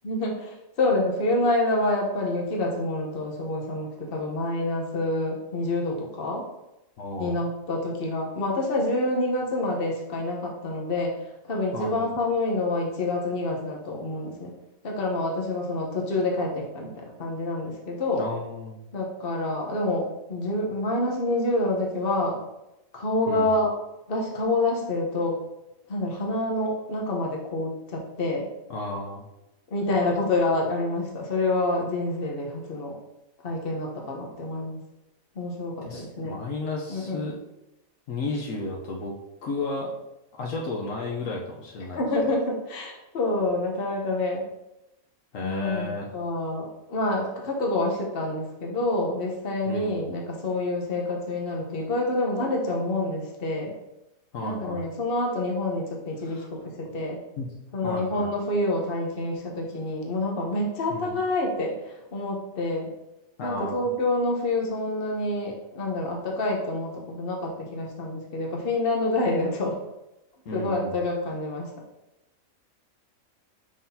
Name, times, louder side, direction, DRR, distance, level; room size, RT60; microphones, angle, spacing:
voice 1, 0.0-6.4 7.2-11.2 11.5-14.5 14.8-18.3 18.9-22.4 22.9-23.7 24.1-25.4 25.9-28.5 29.7-32.9 33.4-34.8 35.3-36.4 36.9-37.3 41.9-44.4 45.4-53.7 54.4-56.4 56.8-57.2 57.7-62.9 63.4-69.8 70.5-71.7, left 2 dB, 45° left, 0 dB, 1.2 m, -27 dB
voice 2, 7.0-7.4 11.7-12.1 18.2-18.8 23.3-23.5 28.7-29.2 35.8-37.4 38.1-39.1 39.4-40.0 40.3-42.0 45.3-46.1 49.7-50.0 54.3-54.8 56.2-56.5 57.4-57.5 57.8-58.3 60.9-61.2 63.4-63.9 70.5-70.9, left 2 dB, 70° left, -1 dB, 1.2 m, -33 dB
6.7 x 5.7 x 2.8 m, 0.93 s
omnidirectional pair, 1.5 m